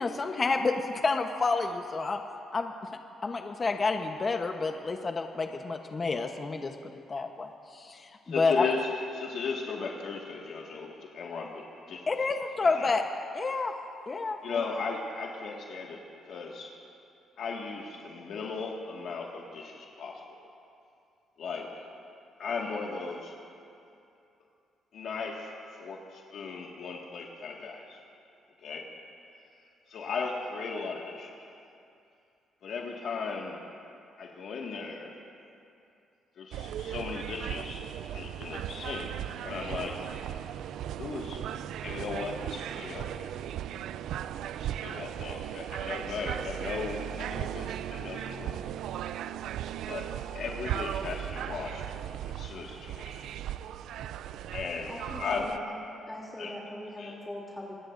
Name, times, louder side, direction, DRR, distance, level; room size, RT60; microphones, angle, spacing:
voice 1, 0.0-2.2 2.5-2.7 3.2-8.1 8.4-8.6 12.1-13.0 13.3-13.7 14.1-14.4, left 3 dB, 35° left, 4 dB, 1.0 m, -29 dB
voice 2, 8.3-12.1 12.8-12.9 14.4-16.7 17.4-20.2 21.4-21.9 22.4-23.3 24.9-28.0 28.6-28.8 29.9-31.5 32.6-33.6 34.2-35.1 36.4-37.8 38.1-39.1 39.4-40.0 41.0-41.4 41.8-43.3 44.6-48.6 49.9-50.1 50.3-51.8 52.3-53.3 54.5-55.5 56.4-56.6 57.0-57.2, left 4 dB, 65° left, -1 dB, 1.8 m, -36 dB
sound 1, 36.5-55.6, right 11 dB, 80° right, 0.4 m, -37 dB
voice 3, 54.9-55.7 56.1-57.7, left 1 dB, 10° left, -4 dB, 3.0 m, -41 dB
26.5 x 19.5 x 2.6 m, 2.6 s
cardioid pair, 90°, 0 cm